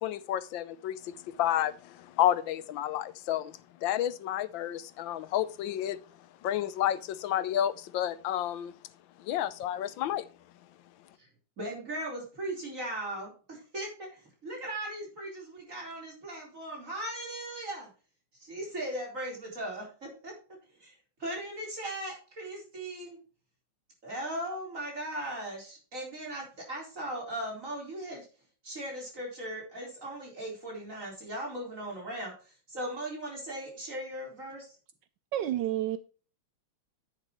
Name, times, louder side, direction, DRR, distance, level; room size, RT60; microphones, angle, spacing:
voice 1, 0.0-6.0 6.4-8.7 9.2-10.3, left 11 dB, 80° left, 1.4 m, -30 dB
voice 2, 11.6-17.9 18.4-20.3 20.8-20.9 21.2-23.2 24.0-28.3 28.6-34.7, right 1 dB, 40° right, 4.6 m, -38 dB
voice 3, 35.3-36.0, right 12 dB, 75° right, 1.2 m, -29 dB
10.5 x 9.1 x 3.1 m
omnidirectional pair, 2.1 m